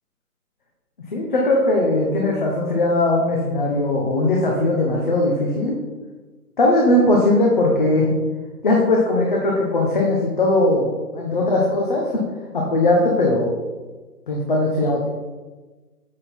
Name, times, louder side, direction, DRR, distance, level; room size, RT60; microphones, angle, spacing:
voice 1, 1.1-5.8 6.6-8.2 8.6-12.2 12.5-13.5 14.3-15.1, left 2 dB, 30° left, -1 dB, 1.1 m, -19 dB
8.1 x 6.4 x 4.4 m, 1.3 s
figure-of-eight pair, 155°, 47 cm